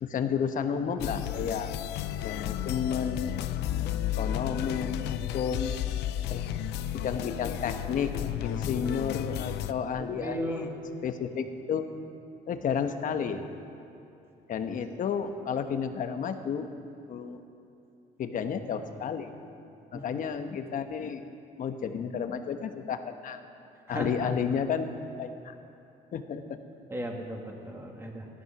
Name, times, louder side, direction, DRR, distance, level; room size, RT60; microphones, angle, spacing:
voice 1, 0.0-1.7 2.2-3.4 4.2-5.8 6.3-6.5 6.9-8.1 8.4-11.9 12.5-13.4 14.5-16.7 17.1-17.4 18.2-19.3 19.9-21.3 21.6-23.4 23.9-24.9 25.2-25.5 26.1-26.6, left 7 dB, 50° left, 7 dB, 1.1 m, -32 dB
sound 1, 1.0-9.7, left 11 dB, 80° left, 0.5 m, -32 dB
voice 2, 10.0-10.7 19.9-20.1 23.9-24.3 26.9-28.3, equal, 15° right, 1 dB, 2.2 m, -36 dB
14.5 x 12.5 x 6.0 m, 2.8 s
cardioid pair, 110°, 17 cm